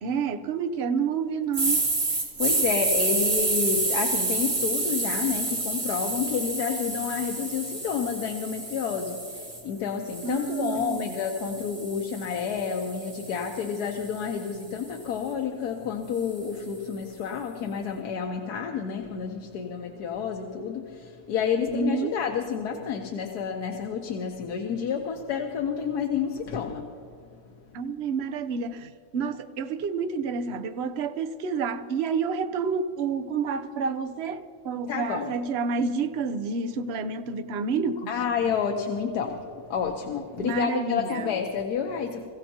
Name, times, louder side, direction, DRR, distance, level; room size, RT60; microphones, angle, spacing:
voice 1, 0.0-1.8 10.2-11.1 21.7-22.1 27.7-38.1 40.4-41.3, right 5 dB, 55° right, 0.8 m, -29 dB
sound 1, 1.5-9.6 10.1-14.3, right 3 dB, 75° right, 4.4 m, -29 dB
voice 2, 2.1-27.4 34.9-35.3 38.1-42.3, left 7 dB, 85° left, 1.5 m, -30 dB
26.5 x 16.0 x 2.9 m
omnidirectional pair, 1.6 m